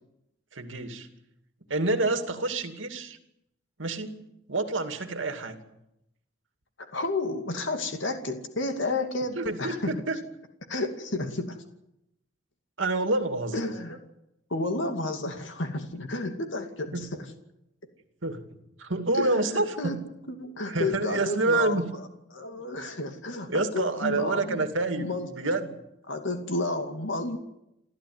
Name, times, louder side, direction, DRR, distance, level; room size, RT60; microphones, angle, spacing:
voice 1, 0.5-1.1 1.7-3.2 3.8-5.6 9.4-10.2 12.8-13.6 16.9-17.0 18.2-20.0 20.7-21.9 23.5-25.8, right 2 dB, 75° right, 7 dB, 2.6 m, -28 dB
voice 2, 6.8-10.0 10.7-11.6 13.5-14.0 14.5-17.3 19.2-20.0 20.3-21.8 22.3-24.6 24.9-25.3 26.1-27.4, left 2 dB, 75° left, 5 dB, 2.5 m, -31 dB
29.0 x 13.5 x 9.6 m, 0.85 s
head